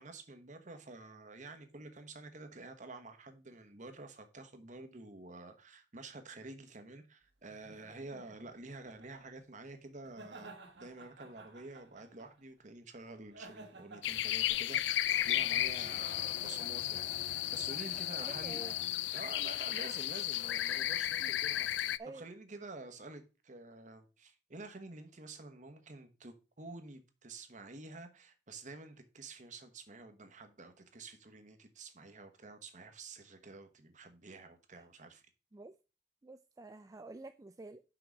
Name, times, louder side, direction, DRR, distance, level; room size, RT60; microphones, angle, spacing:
voice 1, 0.0-18.6 19.1-35.2, right 3 dB, 45° right, 1.1 m, -49 dB
sound 1, 7.5-9.2 10.0-12.4 13.3-14.0, right 2 dB, 70° right, 1.5 m, -54 dB
sound 2, 14.0-22.0, left 13 dB, 75° left, 0.3 m, -34 dB
Bowed string instrument, 15.1-19.4, left 2 dB, 40° left, 2.7 m, -52 dB
voice 2, 18.1-18.7 21.2-21.3 22.0-22.2 35.5-35.7 36.2-37.8, right 3 dB, 20° right, 0.4 m, -49 dB
6.0 x 4.8 x 6.2 m
head